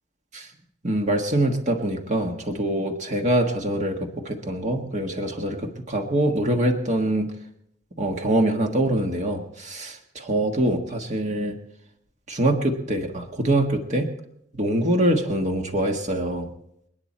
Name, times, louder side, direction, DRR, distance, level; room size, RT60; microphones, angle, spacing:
voice 1, 0.8-7.3 8.0-11.5 12.3-14.1 14.6-16.5, right 1 dB, 40° right, 4 dB, 1.6 m, -24 dB
29.0 x 9.7 x 4.3 m, 0.75 s
head